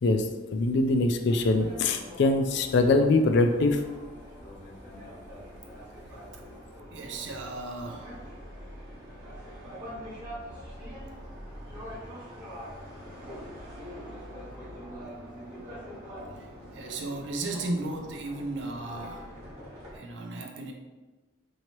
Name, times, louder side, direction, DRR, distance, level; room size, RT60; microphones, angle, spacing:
voice 1, 0.0-3.8, left 2 dB, 60° left, 7 dB, 0.3 m, -23 dB
sound 1, 1.3-20.0, equal, 20° right, 1.2 m, -44 dB
voice 2, 6.9-8.2 16.7-19.3 19.9-20.7, right 2 dB, 65° right, 2 dB, 0.6 m, -35 dB
4.5 x 2.8 x 3.0 m, 1.2 s
head